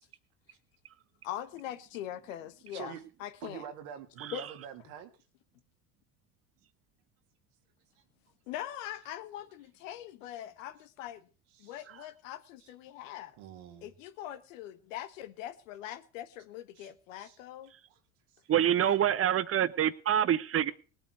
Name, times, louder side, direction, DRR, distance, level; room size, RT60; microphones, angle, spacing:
voice 1, 1.2-2.9 3.2-3.6 4.3-4.5 8.5-11.3 11.6-13.4 13.8-17.7, left 12 dB, 75° left, 1.4 m, -42 dB
voice 2, 3.4-5.1 11.6-11.9 12.6-12.7 13.4-13.9 16.8-16.9 17.2-17.4 17.9-18.0, right 9 dB, 70° right, 2.3 m, -46 dB
voice 3, 18.5-20.7, right 10 dB, 35° right, 1.0 m, -26 dB
19.5 x 8.8 x 4.8 m
hypercardioid pair, 75°, 38 cm